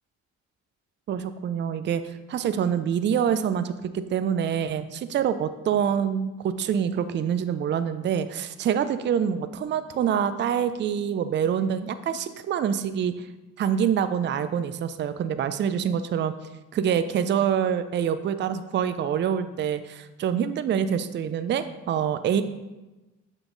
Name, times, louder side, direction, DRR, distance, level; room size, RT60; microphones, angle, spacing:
voice 1, 1.1-13.3 13.6-16.3 16.7-22.4, right 8 dB, 40° right, 12 dB, 0.4 m, -26 dB
7.0 x 3.9 x 3.8 m, 1.1 s
cardioid pair, 90°, 30 cm